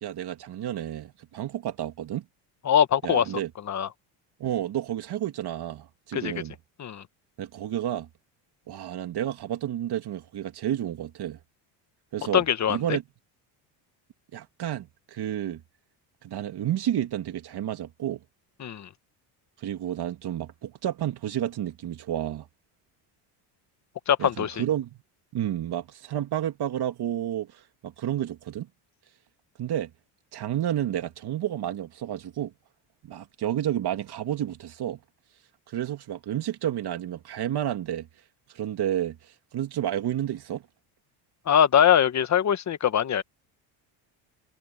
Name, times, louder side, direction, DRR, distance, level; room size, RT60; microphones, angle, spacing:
voice 1, 0.0-2.2 3.0-3.5 4.4-6.5 7.4-8.1 8.7-11.4 12.1-13.0 14.3-15.6 16.2-18.2 19.6-22.5 24.2-24.9 25.3-28.7 29.6-29.9 30.3-32.5 33.0-35.0 35.7-38.1 38.5-39.2 39.5-40.6, right 11 dB, 55° right, 2.6 m, -30 dB
voice 2, 2.6-3.2 3.7-3.9 6.1-6.3 6.8-7.0 12.3-13.0 18.6-18.9 24.1-24.5 41.5-43.2, left 9 dB, 35° left, 1.3 m, -22 dB
supercardioid pair, 95°, 48 cm